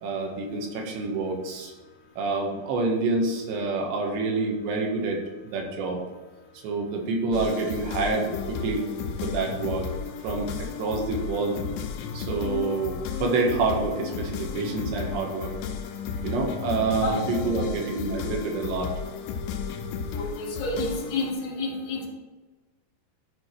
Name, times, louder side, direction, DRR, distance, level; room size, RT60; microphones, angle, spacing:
voice 1, 0.0-1.7 2.2-5.2 5.5-6.0 6.6-8.9 9.2-9.9 10.2-11.6 12.1-15.5 16.2-18.9, right 3 dB, 85° right, 1 dB, 3.8 m, -27 dB
sound 1, 7.3-21.3, left 6 dB, 85° left, 3.1 m, -33 dB
voice 2, 20.1-22.1, left 2 dB, 45° left, -5 dB, 3.2 m, -30 dB
13.5 x 4.8 x 4.6 m, 1.2 s
omnidirectional pair, 4.9 m